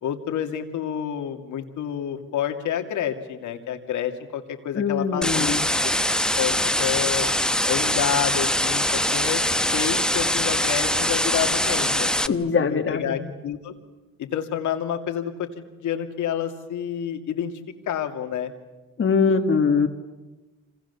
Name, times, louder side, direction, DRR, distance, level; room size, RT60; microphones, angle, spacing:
voice 1, 0.0-5.9 6.3-7.3 7.7-9.4 9.7-12.3 12.7-13.7 14.2-17.5 17.9-18.5, left 9 dB, 80° left, 6 dB, 2.5 m, -29 dB
voice 2, 4.7-5.6 12.3-13.3 19.0-19.9, left 5 dB, 45° left, 5 dB, 1.9 m, -22 dB
sound 1, 5.2-12.3, left 1 dB, 5° left, 0.9 m, -23 dB
27.5 x 26.5 x 7.0 m, 1.1 s
cardioid pair, 90°, 30 cm